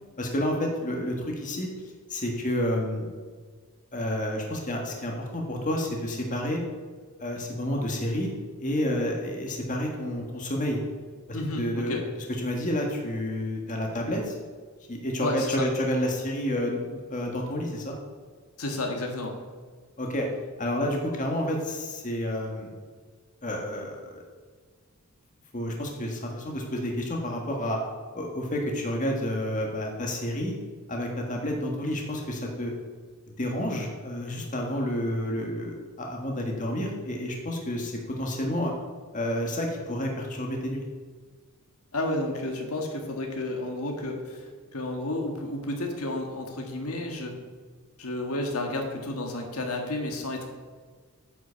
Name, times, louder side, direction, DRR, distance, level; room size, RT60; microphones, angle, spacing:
voice 1, 0.2-1.7 2.1-3.1 3.9-6.6 7.2-8.3 8.6-10.8 11.5-14.3 14.9-18.0 20.0-20.3 20.6-22.7 23.4-24.2 25.5-27.8 28.1-30.5 30.9-32.7 33.4-38.7 39.1-40.8, left 1 dB, 35° left, 0 dB, 1.7 m, -30 dB
voice 2, 11.3-12.0 15.2-15.7 18.6-19.3 41.9-47.3 48.0-50.5, left 1 dB, 80° left, 2 dB, 1.7 m, -31 dB
9.6 x 6.2 x 7.0 m, 1.5 s
head